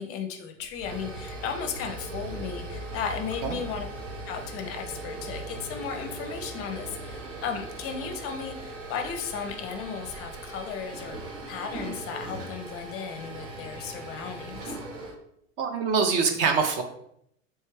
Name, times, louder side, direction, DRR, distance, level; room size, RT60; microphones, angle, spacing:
voice 1, 0.0-3.9 4.3-14.8, left 6 dB, 35° left, 5 dB, 0.5 m, -35 dB
sound 1, 0.6-15.1, right 2 dB, 70° right, 1.1 m, -39 dB
voice 2, 15.6-16.8, right 5 dB, 35° right, 5 dB, 0.6 m, -24 dB
3.2 x 3.2 x 3.1 m, 0.71 s
hypercardioid pair, 90°, 40 cm